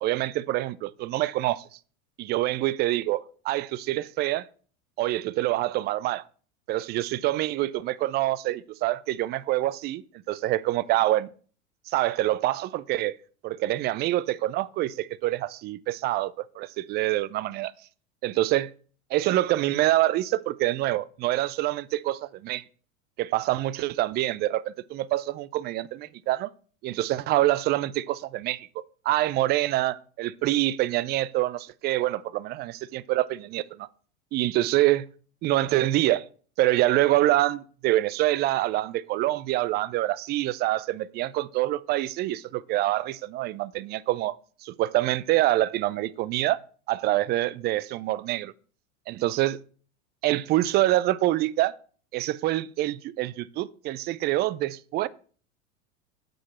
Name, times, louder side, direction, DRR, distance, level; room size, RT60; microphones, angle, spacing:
voice 1, 0.0-1.7 2.2-4.5 5.0-6.2 6.7-10.0 10.3-11.3 11.9-13.2 13.4-17.7 18.2-18.7 19.1-22.6 23.2-26.5 26.8-33.9 34.3-35.1 35.4-36.3 36.6-44.4 44.6-46.6 46.9-48.5 49.1-49.6 50.2-51.7 52.1-55.1, right 15 dB, 25° right, 0.4 m, -26 dB
8.2 x 5.4 x 6.0 m
hypercardioid pair, 90°, 41 cm